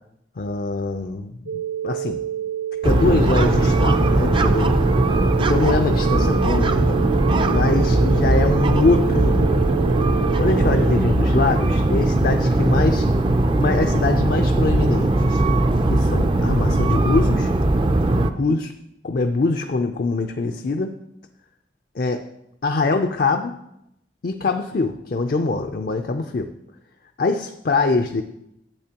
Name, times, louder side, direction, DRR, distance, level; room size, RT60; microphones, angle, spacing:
voice 1, 0.4-2.2 2.8-4.9 5.4-7.0 7.5-9.5 10.4-13.1 13.5-15.4 15.9-17.5 18.3-18.7 19.0-21.0 21.9-22.3 22.6-23.6 24.2-26.5 27.2-28.2, left 3 dB, 55° left, 6 dB, 0.5 m, -23 dB
sound 1, 1.5-11.0, right 10 dB, 80° right, 0.6 m, -28 dB
sound 2, 2.8-18.3, right 1 dB, 30° right, 0.4 m, -19 dB
12.0 x 8.2 x 2.9 m, 0.81 s
head